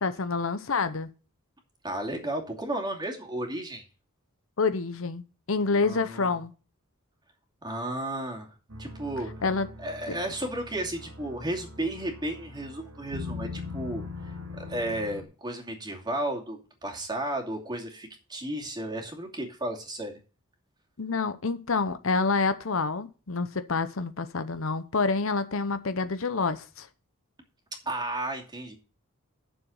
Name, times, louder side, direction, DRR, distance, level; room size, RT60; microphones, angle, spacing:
voice 1, 0.0-1.1 4.6-5.2 5.5-6.5 9.4-9.7 10.1-10.2 21.0-26.9, left 4 dB, 65° left, 0.8 m, -27 dB
voice 2, 1.8-3.8 5.8-6.4 7.6-8.5 8.8-9.3 9.8-14.1 14.5-20.1 27.9-28.8, right 1 dB, 20° right, 2.6 m, -33 dB
sound 1, 8.7-15.2, left 3 dB, 80° right, 2.3 m, -41 dB
10.0 x 7.0 x 5.4 m
head